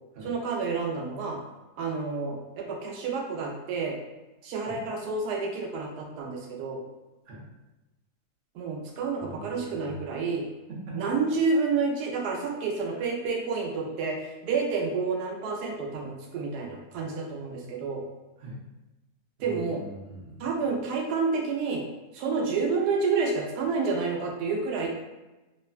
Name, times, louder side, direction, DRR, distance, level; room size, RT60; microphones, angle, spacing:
voice 1, 0.2-1.4 1.8-4.0 4.4-6.8 8.5-10.4 10.9-18.0 19.4-19.8 20.4-21.8 22.1-24.9, right 4 dB, 90° right, 0 dB, 1.1 m, -29 dB
voice 2, 9.2-10.1 10.7-11.0 12.9-13.0 17.5-17.6 18.4-18.6 19.4-20.5, right 1 dB, 55° right, -4 dB, 0.7 m, -43 dB
3.2 x 2.1 x 2.3 m, 1.1 s
omnidirectional pair, 1.7 m